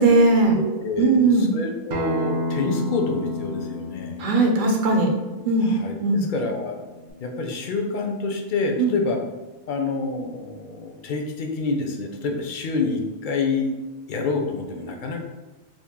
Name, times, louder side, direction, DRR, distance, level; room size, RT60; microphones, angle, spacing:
voice 1, 0.0-0.6 1.0-1.5 4.2-5.1 5.4-5.7 6.0-6.2 8.8-8.9, right 3 dB, 55° right, 1 dB, 0.7 m, -18 dB
voice 2, 0.5-4.2 5.6-6.8 7.2-9.2 9.7-13.7 14.1-15.2, left 3 dB, 60° left, 3 dB, 0.6 m, -27 dB
Acoustic guitar, 1.9-7.1, left 1 dB, 90° right, 0.9 m, -31 dB
2.9 x 2.5 x 3.6 m, 1.2 s
omnidirectional pair, 1.2 m